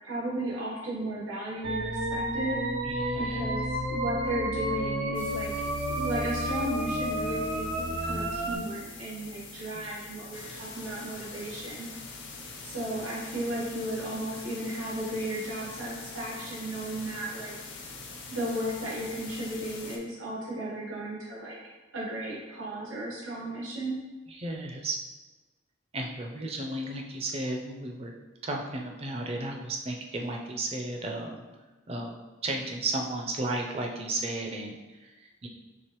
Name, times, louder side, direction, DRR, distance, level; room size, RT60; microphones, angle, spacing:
voice 1, 0.0-2.6 3.2-5.5 5.9-11.9 12.6-17.5 18.3-21.6 21.9-24.0, right 1 dB, 85° right, -6 dB, 1.2 m, -34 dB
sound 1, 1.6-8.6, right 1 dB, 65° right, 0.7 m, -31 dB
voice 2, 2.8-3.5 9.7-10.1 24.3-25.0 25.9-28.1 28.4-31.4 31.9-32.2 32.4-35.5, right 2 dB, 30° right, 2 dB, 0.5 m, -34 dB
sound 2, 5.1-20.0, left 4 dB, 65° left, 0.7 m, -44 dB
4.7 x 3.4 x 3.0 m, 1.2 s
head